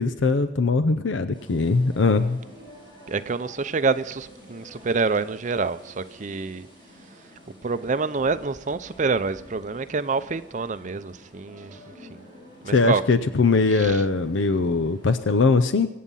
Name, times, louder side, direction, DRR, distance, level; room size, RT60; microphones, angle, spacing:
voice 1, 0.0-2.4 12.7-15.9, left 3 dB, 85° left, 0.6 m, -21 dB
sound 1, 1.3-15.2, equal, 30° left, 6.0 m, -48 dB
voice 2, 3.1-6.7 7.6-11.8 12.1-12.2 12.6-13.0 13.7-14.0, right 4 dB, 40° right, 0.5 m, -27 dB
24.5 x 8.5 x 5.5 m
head